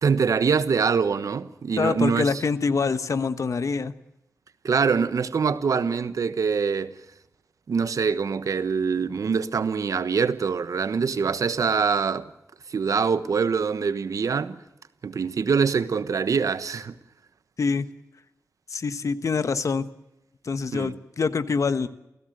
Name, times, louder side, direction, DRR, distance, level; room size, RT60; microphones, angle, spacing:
voice 1, 0.0-2.4 4.6-6.9 7.7-12.3 12.7-14.6 15.0-17.0 20.7-20.9, right 5 dB, 85° right, 1.2 m, -24 dB
voice 2, 1.8-3.9 17.6-17.9 18.7-19.9 20.4-21.9, left 4 dB, 70° left, 1.3 m, -25 dB
28.5 x 17.0 x 8.0 m
wide cardioid pair, 110°, 6 cm